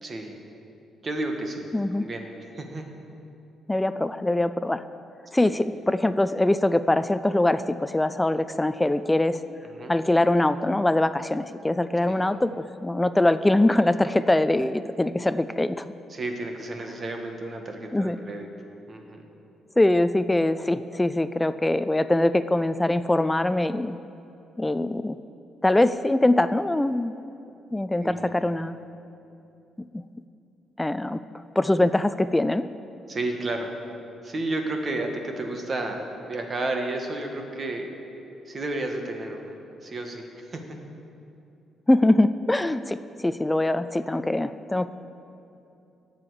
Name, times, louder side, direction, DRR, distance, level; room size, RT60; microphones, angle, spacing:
voice 1, 0.0-0.4 1.0-1.7 1.9-2.9 5.4-5.5 9.7-9.9 12.0-12.2 16.1-18.5 18.9-19.2 28.0-28.3 33.1-33.7 34.2-37.9 38.5-40.6, right 2 dB, 40° right, 3 dB, 1.5 m, -32 dB
voice 2, 1.7-2.1 3.7-4.8 5.3-9.4 9.9-15.9 17.9-18.2 19.8-24.0 24.6-25.2 25.6-27.1 27.7-28.8 29.9-30.0 30.8-31.2 31.6-32.6 41.9-44.9, left 1 dB, 10° left, 13 dB, 0.3 m, -23 dB
18.0 x 7.1 x 4.9 m, 2.8 s
cardioid pair, 90°, 0 cm